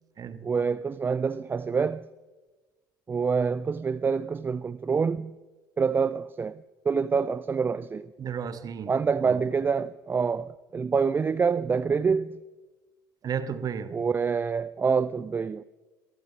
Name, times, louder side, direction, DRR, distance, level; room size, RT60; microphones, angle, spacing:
voice 1, 0.4-2.1 3.1-5.4 5.8-8.1 8.9-12.4 13.9-15.6, right 5 dB, 20° right, 0.4 m, -26 dB
voice 2, 8.2-9.0 9.2-9.4 13.2-14.0, right 7 dB, 35° right, 1.5 m, -33 dB
23.5 x 15.0 x 3.5 m
figure-of-eight pair, 60°, 11 cm